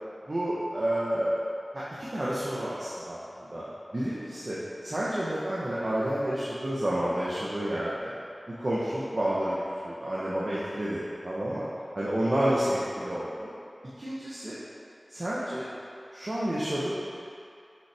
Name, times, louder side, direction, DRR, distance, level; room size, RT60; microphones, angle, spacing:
voice 1, 0.3-1.3 1.7-3.6 3.9-8.1 8.6-11.7 11.9-13.5 14.0-14.6 15.1-15.7 16.1-16.9, right 1 dB, 50° right, -8 dB, 0.9 m, -30 dB
6.4 x 5.5 x 3.4 m, 2.4 s
wide cardioid pair, 55°, 0 cm